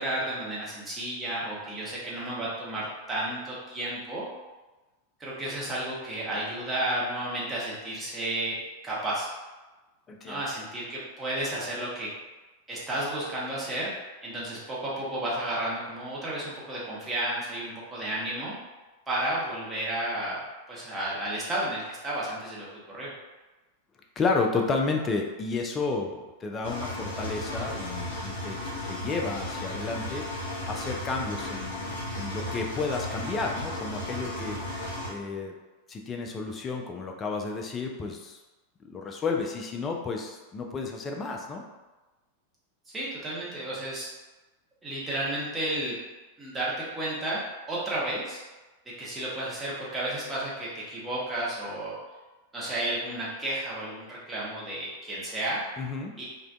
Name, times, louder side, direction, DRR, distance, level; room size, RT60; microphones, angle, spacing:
voice 1, 0.0-4.3 5.2-9.3 10.3-12.1 12.7-13.9 14.2-18.5 19.1-20.4 20.7-22.7 22.9-23.1 42.9-44.1 44.8-46.0 46.4-47.4 47.7-48.4 49.0-51.9 52.5-55.6 56.2-56.3, right 1 dB, 15° right, -7 dB, 0.8 m, -32 dB
voice 2, 10.1-10.4 24.2-28.6 28.9-34.6 35.0-35.5 35.9-38.4 38.8-41.6 55.8-56.1, left 4 dB, 25° left, 2 dB, 0.3 m, -31 dB
Engine, 26.6-35.1, left 1 dB, 70° left, 0.9 m, -35 dB
2.4 x 2.1 x 2.3 m, 1.2 s
figure-of-eight pair, 90°, 0 cm